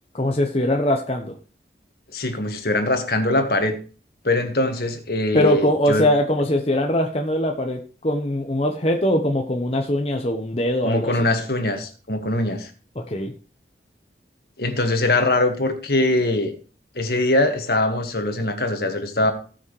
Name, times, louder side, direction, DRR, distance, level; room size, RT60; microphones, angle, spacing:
voice 1, 0.1-1.3 5.3-11.2 13.1-13.3, left 1 dB, 35° left, 2 dB, 1.0 m, -22 dB
voice 2, 2.1-3.8 4.2-6.1 10.8-12.7 14.6-16.5 17.0-19.3, left 2 dB, 55° left, 6 dB, 1.8 m, -22 dB
18.5 x 6.3 x 3.3 m, 0.38 s
head